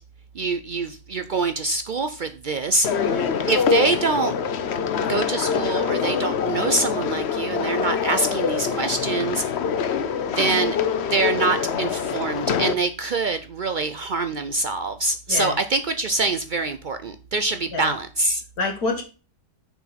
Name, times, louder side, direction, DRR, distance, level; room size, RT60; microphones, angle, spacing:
voice 1, 0.3-4.3 5.1-9.4 10.3-10.8 11.1-18.4, right 3 dB, 70° right, 9 dB, 0.4 m, -25 dB
sound 1, 2.8-12.7, left 7 dB, 55° left, 0.9 m, -25 dB
voice 2, 3.1-3.5 15.3-15.6 17.7-17.9 18.6-19.0, left 3 dB, 90° left, 2 dB, 2.1 m, -27 dB
6.7 x 4.9 x 5.6 m, 0.34 s
omnidirectional pair, 1.6 m